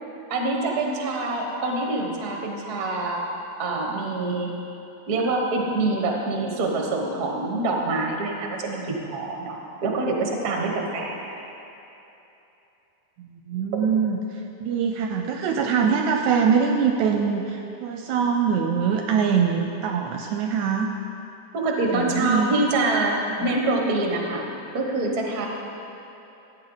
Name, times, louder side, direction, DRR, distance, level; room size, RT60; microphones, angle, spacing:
voice 1, 0.3-3.2 3.6-4.5 5.1-11.4 21.5-24.4 24.7-25.5, right 2 dB, 55° right, 0 dB, 1.1 m, -25 dB
voice 2, 13.2-14.2 14.6-20.9 21.9-22.6 23.3-23.5, right 6 dB, 80° right, 3 dB, 1.8 m, -23 dB
15.5 x 8.8 x 4.0 m, 2.9 s
omnidirectional pair, 3.7 m